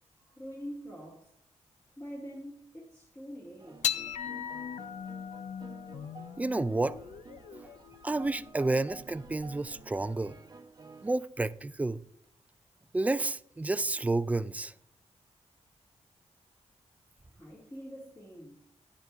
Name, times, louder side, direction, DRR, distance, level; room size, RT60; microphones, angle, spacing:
voice 1, 0.2-1.3 2.0-3.8 17.3-18.6, equal, 20° left, 2.3 m, -45 dB
sound 1, 3.6-11.1, right 3 dB, 35° right, 0.9 m, -51 dB
sound 2, 3.8-10.4, left 9 dB, 80° left, 0.5 m, -39 dB
voice 2, 6.4-7.0 8.0-10.4 11.0-12.0 12.9-14.7, right 2 dB, 10° right, 0.3 m, -30 dB
11.0 x 10.5 x 2.5 m
wide cardioid pair, 120°, 12 cm